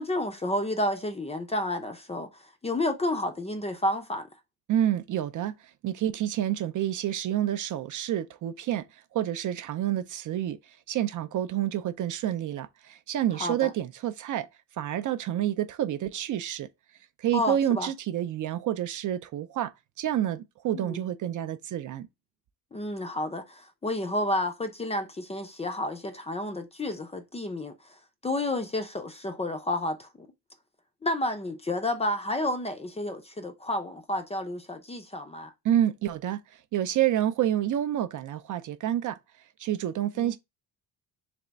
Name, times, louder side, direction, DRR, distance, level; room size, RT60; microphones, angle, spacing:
voice 1, 0.0-4.3 13.4-13.7 17.3-17.9 20.7-21.0 22.7-27.7 28.2-30.3 31.0-35.5 40.2-40.3, left 1 dB, 15° left, 0.4 m, -30 dB
voice 2, 4.7-5.5 5.8-14.5 14.8-16.7 17.2-19.7 20.0-22.1 35.6-39.2 39.6-40.4, right 11 dB, 50° right, 0.4 m, -28 dB
3.4 x 3.2 x 3.9 m
cardioid pair, 135°, 41 cm